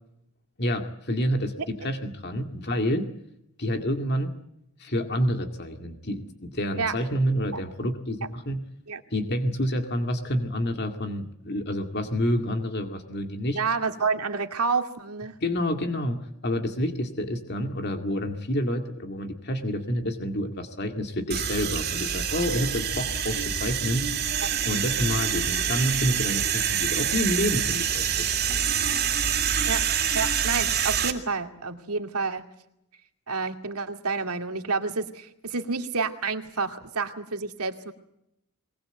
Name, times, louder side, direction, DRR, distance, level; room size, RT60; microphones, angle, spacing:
voice 1, 0.6-3.1 3.6-4.3 4.8-8.6 9.1-13.6 15.4-24.1 24.7-28.3, equal, 50° left, 5 dB, 2.1 m, -28 dB
voice 2, 13.5-15.4 24.4-24.5 29.7-29.9 30.1-32.4 33.3-37.9, right 4 dB, 90° right, 6 dB, 2.4 m, -29 dB
sound 1, 21.3-31.1, right 8 dB, 45° right, 2.9 m, -26 dB
23.0 x 20.5 x 8.1 m, 0.79 s
head